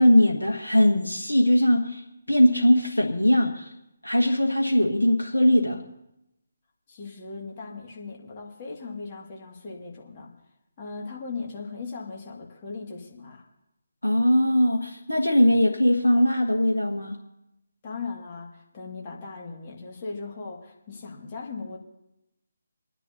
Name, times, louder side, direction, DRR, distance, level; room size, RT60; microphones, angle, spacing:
voice 1, 0.0-3.7 4.0-5.8 14.0-17.2, left 1 dB, 75° left, 0 dB, 1.4 m, -20 dB
voice 2, 6.9-10.3 10.8-13.5 17.8-21.8, left 4 dB, 30° left, -1 dB, 2.0 m, -38 dB
29.5 x 10.0 x 2.7 m, 0.85 s
figure-of-eight pair, 145°, 0 cm